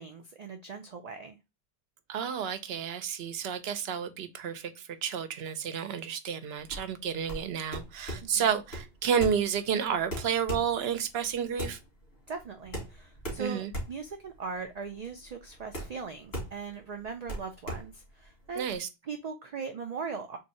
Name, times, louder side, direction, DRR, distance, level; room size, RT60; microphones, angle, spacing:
voice 1, 0.0-1.4 8.2-8.5 12.3-18.7 19.1-20.4, right 5 dB, 50° right, 0.5 m, -39 dB
voice 2, 2.1-11.8 13.4-13.7 18.6-18.9, right 7 dB, 80° right, 0.8 m, -31 dB
sound 1, 6.6-18.8, equal, 90° left, 1.9 m, -40 dB
3.7 x 2.7 x 4.1 m
omnidirectional pair, 1.0 m